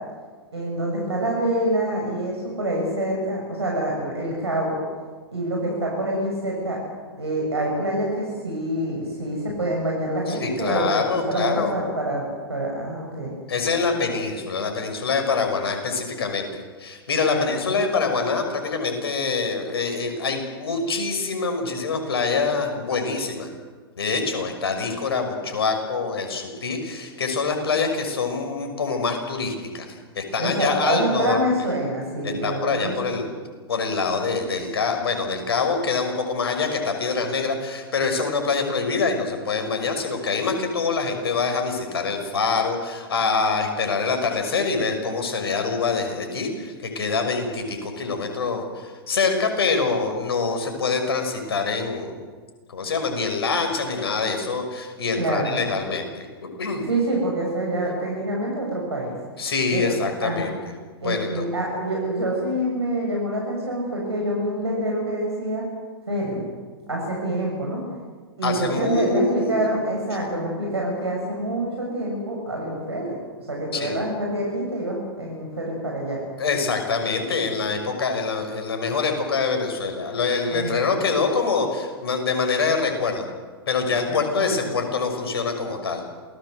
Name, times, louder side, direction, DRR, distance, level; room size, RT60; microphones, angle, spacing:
voice 1, 0.5-4.8 5.3-6.8 7.2-13.3 17.1-17.5 30.4-33.1 55.2-55.6 56.9-59.2 59.7-60.5 61.0-65.6 66.1-66.4 66.9-67.8 68.4-73.1 73.5-76.2 80.5-81.0 84.1-84.9, right 1 dB, 85° right, -2 dB, 6.9 m, -26 dB
voice 2, 10.3-11.8 13.5-23.5 24.0-31.4 32.2-33.3 33.7-52.2 52.7-56.8 59.4-60.6 61.0-61.4 68.4-69.8 73.7-74.0 76.4-83.3 83.7-86.0, left 4 dB, 70° left, 5 dB, 6.0 m, -25 dB
28.0 x 19.5 x 7.9 m, 1.5 s
figure-of-eight pair, 110°, 13 cm